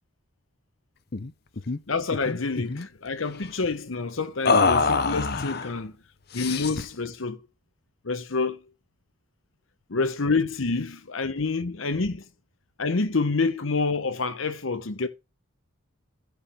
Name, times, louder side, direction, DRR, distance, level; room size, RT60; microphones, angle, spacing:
sound 1, 1.1-1.3 1.6-1.8 2.1-2.9 4.4-5.7 6.3-6.9, left 4 dB, 50° left, 0.7 m, -24 dB
voice 1, 1.9-5.9 6.3-7.4 8.0-8.6 9.9-12.2 12.8-15.1, left 4 dB, 75° left, 0.9 m, -27 dB
14.0 x 4.9 x 3.5 m
head